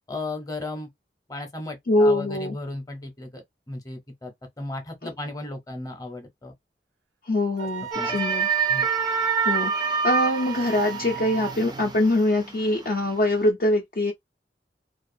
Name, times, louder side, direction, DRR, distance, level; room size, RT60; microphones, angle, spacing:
voice 1, 0.1-0.9 1.3-4.3 4.6-6.5 7.6-7.7 7.9-8.2 8.7-8.9, left 2 dB, 20° left, 0.7 m, -35 dB
voice 2, 1.9-2.5 7.3-8.5 9.5-14.1, left 1 dB, 55° left, 0.5 m, -23 dB
Wind instrument woodwind instrument, 7.6-11.6, right 10 dB, 80° right, 0.5 m, -36 dB
sound 1, 7.9-12.8 13.2-13.3, right 5 dB, 25° right, 0.4 m, -26 dB
2.4 x 2.3 x 2.6 m
head